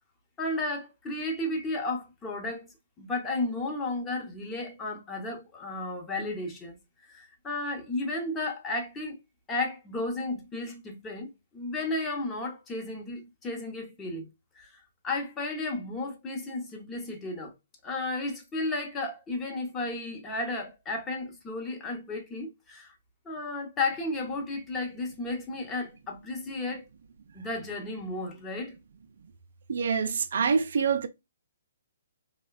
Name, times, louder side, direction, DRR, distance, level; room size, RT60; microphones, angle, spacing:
voice 1, 0.4-2.7 3.0-6.8 7.1-9.2 9.5-14.3 14.5-17.5 17.8-22.9 23.2-26.9 27.3-28.8, left 2 dB, 15° left, 0.8 m, -33 dB
voice 2, 29.7-31.1, right 6 dB, 65° right, 0.3 m, -26 dB
3.0 x 2.1 x 2.2 m
hypercardioid pair, 135°, 0 cm